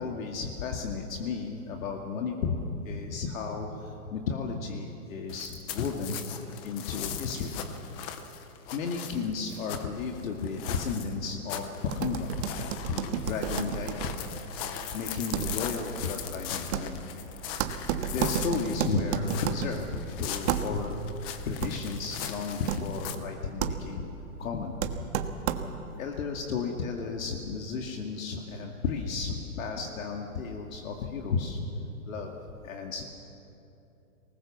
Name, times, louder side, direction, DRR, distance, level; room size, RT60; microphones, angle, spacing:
voice 1, 0.0-2.6 2.9-6.2 6.6-7.7 8.7-12.3 12.9-14.2 14.9-17.1 18.1-21.0 21.4-24.1 24.4-25.2 26.0-31.6 32.0-32.4 32.6-33.0, left 5 dB, 65° left, 1 dB, 2.3 m, -33 dB
sound 1, 5.3-23.1, left 9 dB, 10° left, 0.5 m, -40 dB
sound 2, 11.9-26.0, right 8 dB, 50° right, 1.4 m, -34 dB
24.0 x 20.0 x 7.3 m, 2.9 s
hypercardioid pair, 145°, 44 cm